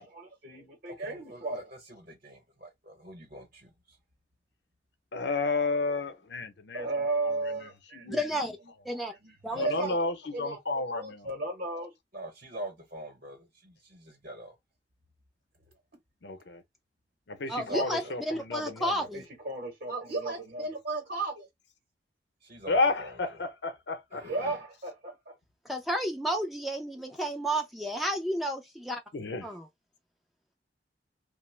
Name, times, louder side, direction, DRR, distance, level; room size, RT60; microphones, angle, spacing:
voice 1, 0.0-3.7 6.7-8.1 8.9-10.0 10.3-10.6 10.9-14.5 17.5-18.2 19.1-21.5 22.4-23.1 24.1-25.4, right 2 dB, 50° right, 0.8 m, -36 dB
voice 2, 5.1-7.1 7.6-7.7 7.9-8.2 9.5-11.3 16.2-16.6 17.3-19.0 22.7-24.2 29.1-29.5, left 3 dB, 80° left, 0.7 m, -31 dB
voice 3, 8.1-8.6 8.8-9.1 9.4-9.7 17.5-19.2 25.6-29.0 29.4-29.7, equal, ahead, 0.3 m, -32 dB
2.8 x 2.0 x 3.1 m
head